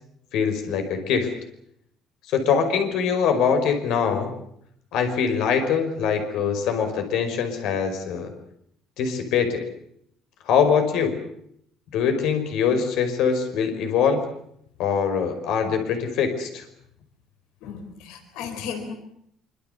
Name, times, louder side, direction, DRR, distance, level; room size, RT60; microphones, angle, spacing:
voice 1, 0.3-1.3 2.3-4.3 4.9-8.3 9.0-9.6 10.5-11.2 11.9-14.2 14.8-16.6, left 6 dB, 60° left, 6 dB, 5.3 m, -23 dB
voice 2, 17.6-18.9, left 6 dB, 90° left, 7 dB, 4.5 m, -35 dB
25.5 x 25.0 x 6.9 m, 0.71 s
cardioid pair, 175°, 0 cm